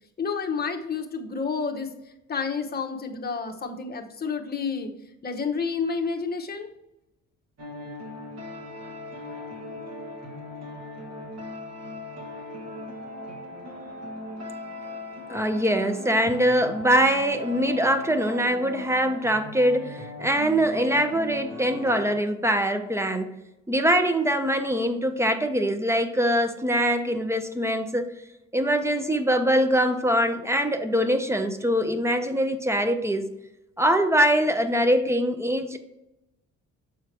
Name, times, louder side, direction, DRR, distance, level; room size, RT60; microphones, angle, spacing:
voice 1, 0.2-1.9 2.3-4.9 5.2-6.7, left 5 dB, 30° left, 4 dB, 0.9 m, -29 dB
sound 1, 7.6-22.2, left 1 dB, 60° right, 1.8 m, -38 dB
voice 2, 15.3-23.3 23.7-28.1 28.5-33.3 33.8-35.8, equal, 10° right, 9 dB, 0.6 m, -23 dB
6.9 x 4.5 x 3.3 m, 0.92 s
cardioid pair, 90°, 30 cm